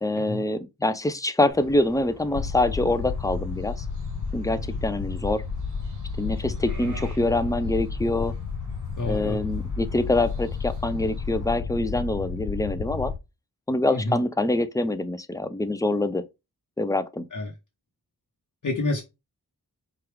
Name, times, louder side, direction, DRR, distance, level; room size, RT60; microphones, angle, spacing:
voice 1, 0.0-3.8 4.3-5.4 6.2-8.3 9.1-13.1 13.7-16.2 16.8-17.3, left 2 dB, 10° left, 0.4 m, -25 dB
sound 1, 1.5-11.6, right 2 dB, 55° right, 1.4 m, -45 dB
sound 2, 2.3-13.2, left 5 dB, 85° left, 0.5 m, -31 dB
voice 2, 9.0-9.4 13.9-14.2 17.3-17.5 18.6-19.0, left 2 dB, 55° left, 0.9 m, -28 dB
4.6 x 2.4 x 3.3 m
wide cardioid pair, 55°, 37 cm